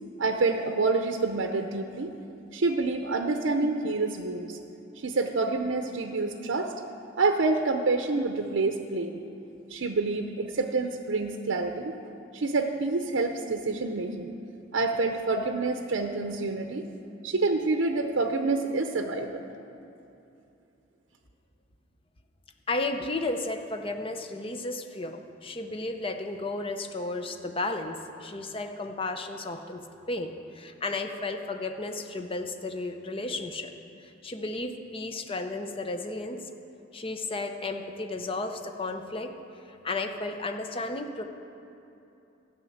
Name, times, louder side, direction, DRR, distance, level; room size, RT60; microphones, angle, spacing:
voice 1, 0.2-2.1 2.5-4.6 5.0-6.7 7.2-9.2 9.7-12.0 12.3-14.3 14.7-16.8 17.2-19.5, right 3 dB, 75° right, 5 dB, 0.6 m, -27 dB
voice 2, 22.7-33.7 34.0-36.4 36.9-39.3 39.7-41.2, left 2 dB, 30° left, 6 dB, 0.7 m, -33 dB
13.0 x 6.3 x 8.5 m, 2.8 s
head